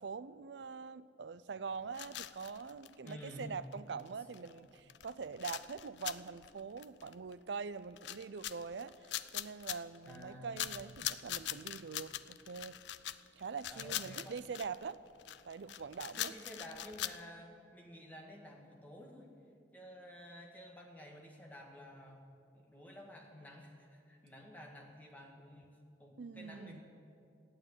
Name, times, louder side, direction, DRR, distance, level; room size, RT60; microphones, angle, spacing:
voice 1, 0.0-12.8 13.4-15.0 15.4-16.3 26.2-26.8, right 5 dB, 80° right, 15 dB, 0.5 m, -44 dB
sound 1, 1.9-3.4 3.7-3.8 4.0-4.1 4.3-4.6 4.9-7.6 8.0-10.2 10.6-17.2, left 12 dB, 80° left, 0.4 m, -42 dB
voice 2, 3.0-3.5 10.1-10.7 11.0-11.1 13.7-14.4 16.2-19.3 19.7-22.3 22.5-26.8, equal, 10° left, 0 dB, 1.8 m, -52 dB
14.0 x 9.2 x 9.5 m, 2.5 s
head